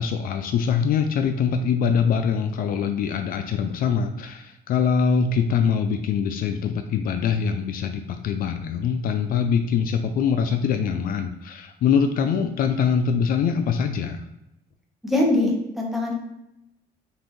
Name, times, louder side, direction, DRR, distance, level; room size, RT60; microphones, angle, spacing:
voice 1, 0.0-14.2, left 6 dB, 60° left, 7 dB, 0.4 m, -23 dB
voice 2, 15.0-16.2, left 2 dB, ahead, -2 dB, 1.0 m, -22 dB
5.4 x 2.6 x 3.1 m, 0.88 s
cardioid pair, 110°, 17 cm